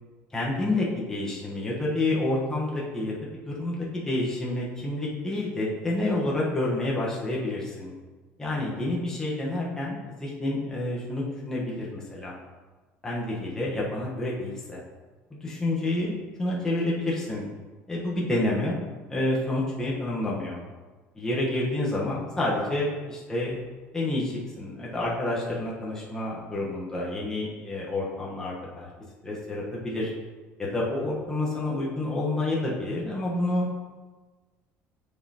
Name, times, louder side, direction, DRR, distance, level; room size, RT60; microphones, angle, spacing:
voice 1, 0.3-3.1 3.5-7.9 8.4-12.4 13.0-14.8 15.3-17.4 17.9-18.8 19.1-20.6 21.1-23.6 23.9-28.9 29.2-30.1 30.6-33.8, left 2 dB, 10° left, -5 dB, 1.1 m, -29 dB
8.7 x 5.2 x 2.9 m, 1.3 s
cardioid pair, 170°, 5 cm